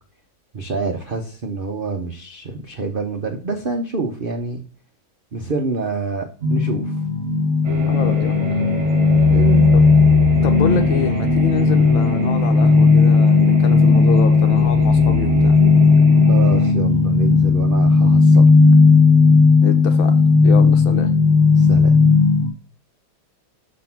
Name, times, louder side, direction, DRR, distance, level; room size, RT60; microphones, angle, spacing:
voice 1, 0.5-4.6 5.3-6.9 9.2-9.7 16.3-18.4 21.6-22.0, right 3 dB, 80° right, 3 dB, 0.4 m, -27 dB
sound 1, 6.4-22.5, left 4 dB, 45° right, 0.8 m, -14 dB
sound 2, 7.6-16.7, right 6 dB, 60° right, 2.5 m, -27 dB
voice 2, 7.9-8.4 9.7-9.8 10.4-15.6 19.6-20.1 20.4-21.1, left 6 dB, 75° left, 6 dB, 1.8 m, -26 dB
6.3 x 3.8 x 5.8 m, 0.38 s
omnidirectional pair, 2.2 m